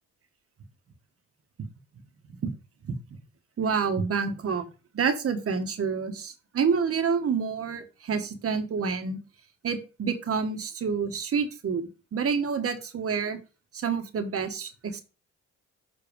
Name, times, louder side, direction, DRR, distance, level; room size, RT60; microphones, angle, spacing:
voice 1, 2.8-3.2 3.6-4.6 4.9-9.2 9.6-13.4 13.7-15.0, right 5 dB, 50° right, 7 dB, 1.3 m, -28 dB
7.2 x 4.0 x 5.0 m, 0.32 s
cardioid pair, 90°, 30 cm